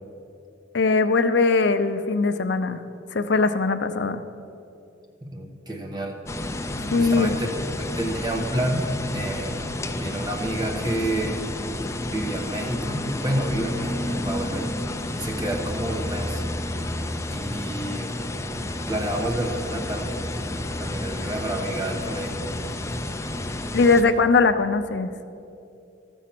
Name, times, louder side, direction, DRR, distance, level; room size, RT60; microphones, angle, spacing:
voice 1, 0.7-2.8 3.1-4.2 6.9-7.4 23.7-25.1, left 4 dB, 65° left, 9 dB, 0.6 m, -20 dB
voice 2, 5.2-6.2 6.9-7.5 7.8-11.4 12.1-14.8 15.2-16.4 17.3-18.1 18.9-20.2 20.8-22.5, right 1 dB, 20° right, 1 dB, 1.1 m, -29 dB
sound 1, 6.3-24.0, left 1 dB, 15° left, 0.5 m, -30 dB
13.0 x 7.2 x 5.9 m, 2.7 s
head